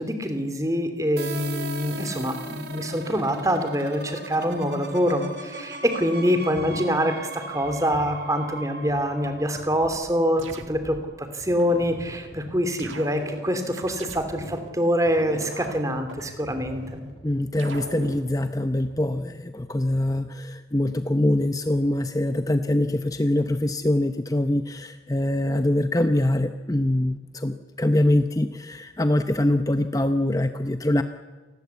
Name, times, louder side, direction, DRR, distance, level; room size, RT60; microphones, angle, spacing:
voice 1, 0.0-17.0, equal, 15° right, 8 dB, 3.0 m, -25 dB
sound 1, 1.2-10.7, right 3 dB, 55° right, 3.5 m, -38 dB
sound 2, 6.5-6.9 7.9-8.2 8.9-9.8 10.4-10.6 11.4-11.7 12.3-13.1 13.8-14.1 14.4-18.0 18.3-18.5 18.8-19.2 20.0-20.2 21.0-21.3 21.9-22.0, equal, 45° left, 6.4 m, -47 dB
sound 3, 9.8-11.1 11.6-12.3 12.8-14.7 15.2-17.1 17.6-18.3, right 2 dB, 90° right, 2.0 m, -40 dB
voice 2, 17.2-31.0, left 1 dB, 20° left, 9 dB, 0.8 m, -24 dB
28.0 x 20.5 x 8.3 m, 1.3 s
head